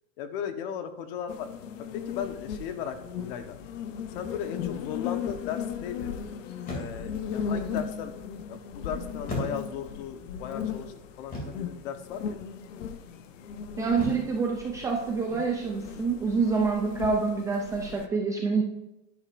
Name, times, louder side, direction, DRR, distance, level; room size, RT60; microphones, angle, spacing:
voice 1, 0.2-1.5 1.9-3.6 4.1-6.2 6.7-8.1 8.5-12.4, left 8 dB, 50° left, 8 dB, 1.1 m, -36 dB
sound 1, 1.3-18.1, left 7 dB, 80° left, 1.1 m, -37 dB
sound 2, 4.2-4.5 6.6-7.2 9.3-10.0 11.3-11.8 14.0-14.4, left 1 dB, 20° left, 2.7 m, -36 dB
voice 2, 13.8-18.6, right 4 dB, 10° right, 0 dB, 0.4 m, -27 dB
10.5 x 10.5 x 2.6 m, 0.94 s
supercardioid pair, 170°, 37 cm